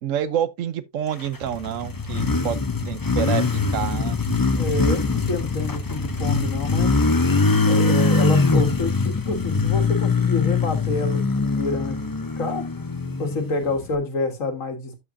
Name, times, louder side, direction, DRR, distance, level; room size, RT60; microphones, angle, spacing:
voice 1, 0.0-4.2, right 9 dB, 75° right, 1.1 m, -28 dB
Motorcycle, 1.2-13.9, left 4 dB, 25° left, 0.4 m, -22 dB
voice 2, 4.5-7.0 7.7-12.1 12.4-12.7 13.2-15.0, left 3 dB, 80° left, 2.0 m, -28 dB
12.5 x 4.9 x 2.6 m
omnidirectional pair, 1.3 m